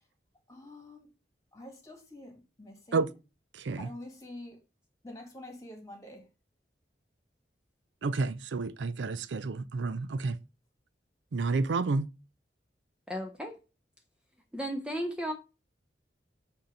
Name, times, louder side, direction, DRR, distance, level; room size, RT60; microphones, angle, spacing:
voice 1, 0.5-1.1 1.5-3.1 3.8-4.6 5.0-6.2, left 1 dB, 20° left, 1.7 m, -46 dB
voice 2, 3.6-3.9 8.0-10.4 11.3-12.1, right 3 dB, 85° right, 0.5 m, -30 dB
voice 3, 13.1-13.6 14.5-15.3, equal, 5° right, 0.6 m, -34 dB
7.9 x 2.9 x 5.1 m
head